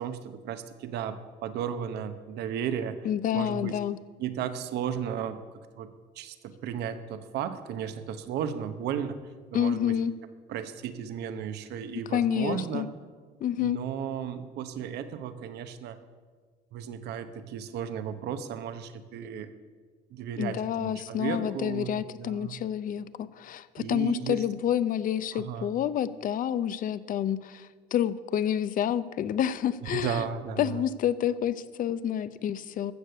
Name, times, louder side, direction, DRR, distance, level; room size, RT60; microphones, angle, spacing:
voice 1, 0.0-3.0 3.3-3.8 4.2-5.4 5.7-5.9 6.2-9.2 9.5-10.0 10.5-12.9 13.6-16.0 16.7-19.5 20.1-22.6 23.8-24.4 25.3-25.7 29.8-30.8, right 8 dB, 80° right, 11 dB, 0.9 m, -34 dB
voice 2, 3.0-4.0 9.5-10.1 12.1-12.9 13.4-13.8 20.4-30.3 30.6-32.9, left 10 dB, 55° left, 16 dB, 0.6 m, -28 dB
15.0 x 6.6 x 6.7 m, 1.5 s
cardioid pair, 110°, 17 cm